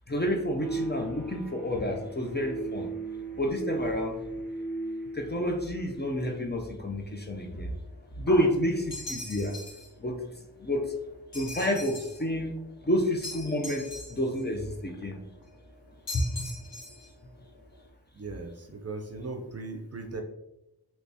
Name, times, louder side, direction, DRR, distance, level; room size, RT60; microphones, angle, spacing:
voice 1, 0.1-2.9 3.3-4.2 5.1-7.7 8.2-9.6 10.0-10.9 11.3-12.6 12.8-15.2 16.1-16.5, equal, 25° left, 1 dB, 0.4 m, -29 dB
sound 1, 0.6-6.4, right 3 dB, ahead, 1.3 m, -37 dB
sound 2, 6.9-17.9, left 2 dB, 55° left, 0.8 m, -52 dB
sound 3, 8.9-9.9 11.3-12.2 13.2-14.4 16.1-17.1, left 2 dB, 80° left, 1.3 m, -40 dB
voice 2, 18.1-20.2, right 3 dB, 40° right, 4 dB, 0.5 m, -38 dB
3.3 x 3.0 x 2.7 m, 0.89 s
wide cardioid pair, 55°, 42 cm